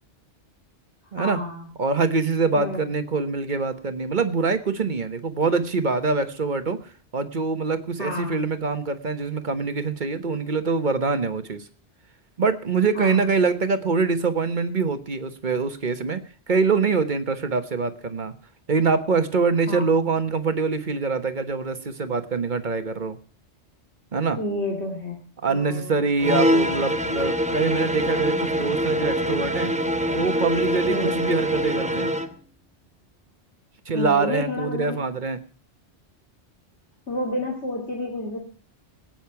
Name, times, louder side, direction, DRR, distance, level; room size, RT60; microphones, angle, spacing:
voice 1, 1.2-1.6 2.6-2.8 8.0-8.4 12.9-13.3 19.7-19.8 24.4-25.2 25.5-26.0 30.9-31.2 33.9-35.0 37.1-38.4, left 1 dB, 70° left, 0 dB, 2.8 m, -30 dB
voice 2, 1.8-6.8 7.1-11.6 12.4-16.2 16.5-18.3 18.7-23.2 24.1-24.4 25.4-29.7 30.1-32.1 33.9-35.4, right 4 dB, 45° right, 10 dB, 1.3 m, -24 dB
sound 1, 26.2-32.3, equal, 5° right, 0.9 m, -24 dB
20.0 x 9.2 x 5.8 m, 0.40 s
omnidirectional pair, 1.2 m